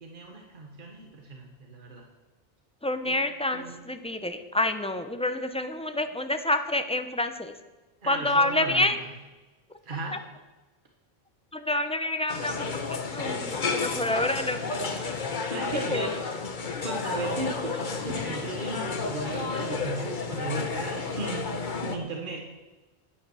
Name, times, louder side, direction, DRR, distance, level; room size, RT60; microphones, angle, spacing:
voice 1, 0.0-2.0 3.1-3.2 3.5-3.8 8.0-9.0 9.8-10.2 15.5-16.1 16.8-21.5 21.8-22.4, right 3 dB, 55° right, 1 dB, 1.5 m, -36 dB
voice 2, 2.8-7.5 8.1-9.0 10.1-10.2 11.5-14.6 15.9-16.1, left 1 dB, 5° left, 8 dB, 0.7 m, -28 dB
sound 1, 12.3-22.0, left 4 dB, 50° left, 1.2 m, -31 dB
10.0 x 10.0 x 7.0 m, 1.2 s
omnidirectional pair, 1.0 m